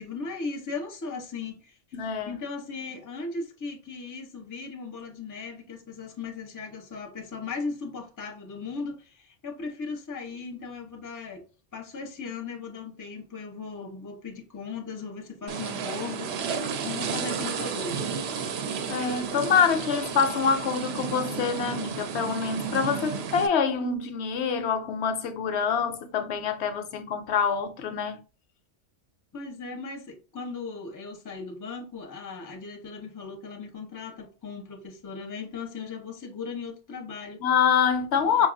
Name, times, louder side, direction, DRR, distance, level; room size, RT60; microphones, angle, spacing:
voice 1, 0.0-11.4 11.7-18.2 29.3-37.4 38.2-38.5, left 4 dB, 20° left, 0.5 m, -37 dB
voice 2, 1.9-2.3 18.9-28.2 37.4-38.5, left 6 dB, 70° left, 0.8 m, -25 dB
sound 1, 15.5-23.5, right 6 dB, 65° right, 0.8 m, -32 dB
5.2 x 2.3 x 2.5 m
omnidirectional pair, 1.2 m